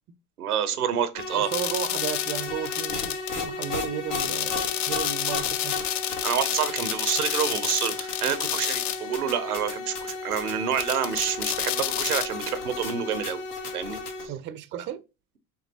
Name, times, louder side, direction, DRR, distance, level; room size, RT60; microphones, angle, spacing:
voice 1, 0.4-1.5 6.2-13.4 13.7-14.0 14.7-14.9, right 8 dB, 85° right, 0.7 m, -28 dB
sound 1, 1.1-14.3, left 4 dB, 90° left, 1.4 m, -34 dB
voice 2, 1.3-5.8 14.3-15.0, right 10 dB, 25° right, 0.4 m, -34 dB
sound 2, 1.5-3.3 3.6-3.7 4.1-9.0 9.3-9.4 10.8-12.3, left 12 dB, 60° left, 0.7 m, -30 dB
5.7 x 3.4 x 2.7 m
hypercardioid pair, 75°, 44 cm